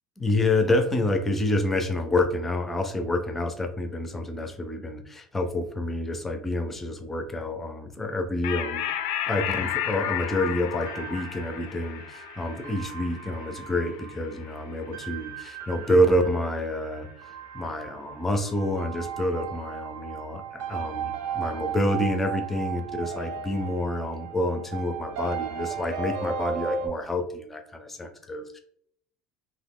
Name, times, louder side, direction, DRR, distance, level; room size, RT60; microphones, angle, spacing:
voice 1, 0.2-8.9 9.3-17.1 17.5-28.6, left 1 dB, 10° left, 6 dB, 0.4 m, -28 dB
sound 1, 8.4-15.3, left 10 dB, 85° left, 0.4 m, -33 dB
sound 2, 9.5-26.9, right 7 dB, 70° right, 0.5 m, -36 dB
2.9 x 2.6 x 3.5 m, 0.65 s
cardioid pair, 165°, 2 cm